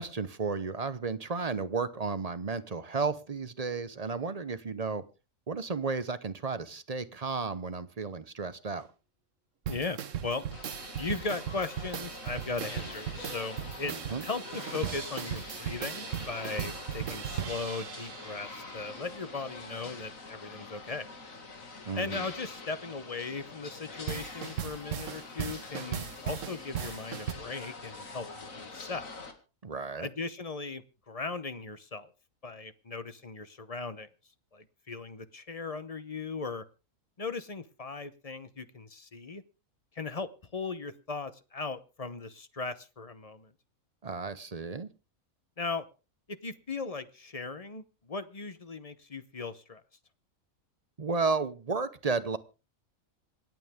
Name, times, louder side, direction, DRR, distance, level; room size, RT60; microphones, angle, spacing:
voice 1, 0.0-5.0 5.5-8.9 13.8-14.2 21.8-22.3 29.6-30.1 44.0-44.9 51.0-52.4, right 4 dB, 35° right, 13 dB, 0.8 m, -33 dB
voice 2, 9.7-10.5 11.0-13.9 14.2-21.1 22.0-29.1 30.0-32.1 32.4-34.1 34.5-36.6 37.2-39.4 39.9-43.5 45.6-45.8 46.3-49.8, left 4 dB, 30° left, 13 dB, 0.8 m, -38 dB
sound 1, 9.7-18.8 24.1-27.3, right 8 dB, 65° right, 1.4 m, -38 dB
sound 2, 10.5-29.3, left 3 dB, 75° left, 2.6 m, -45 dB
26.5 x 9.1 x 3.6 m, 0.32 s
omnidirectional pair, 1.4 m